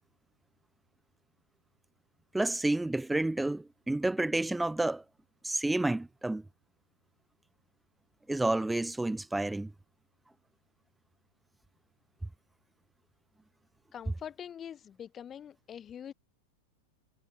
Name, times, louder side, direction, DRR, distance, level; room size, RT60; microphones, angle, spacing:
voice 1, 2.3-5.0 5.4-6.4 8.3-9.7, right 2 dB, 5° right, 0.4 m, -30 dB
voice 2, 13.9-16.1, left 9 dB, 25° left, 1.3 m, -44 dB
figure-of-eight pair, 90°, 0 cm